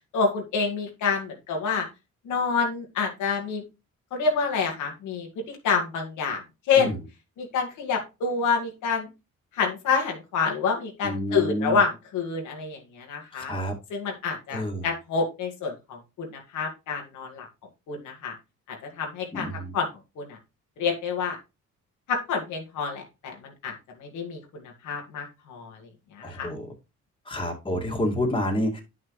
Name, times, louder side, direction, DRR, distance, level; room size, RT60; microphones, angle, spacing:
voice 1, 0.1-1.9 2.2-3.6 4.1-6.4 6.7-6.9 7.4-9.1 9.5-13.5 13.9-17.5 17.9-18.3 18.7-19.9 20.2-20.4 20.8-21.4 22.1-26.5, left 5 dB, 85° left, 1 dB, 2.2 m, -28 dB
voice 2, 11.0-11.8 13.3-13.7 14.5-14.9 19.3-19.7 26.2-26.7 27.3-28.8, left 1 dB, 15° left, 0 dB, 2.2 m, -29 dB
9.6 x 6.1 x 3.2 m, 0.27 s
cardioid pair, 90°, 30 cm